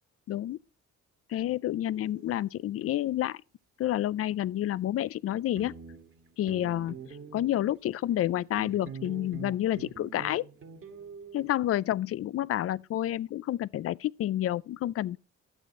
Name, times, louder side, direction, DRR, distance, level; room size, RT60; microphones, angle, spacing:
voice 1, 0.3-0.6 1.3-3.4 3.8-5.8 6.4-7.0 7.3-10.5 11.3-15.2, left 13 dB, 50° left, 0.4 m, -29 dB
sound 1, 2.0-2.4 5.3-5.4 5.5-7.9 8.6-11.5, right 5 dB, 45° right, 1.8 m, -45 dB
12.0 x 7.3 x 4.2 m
cardioid pair, 90°, 30 cm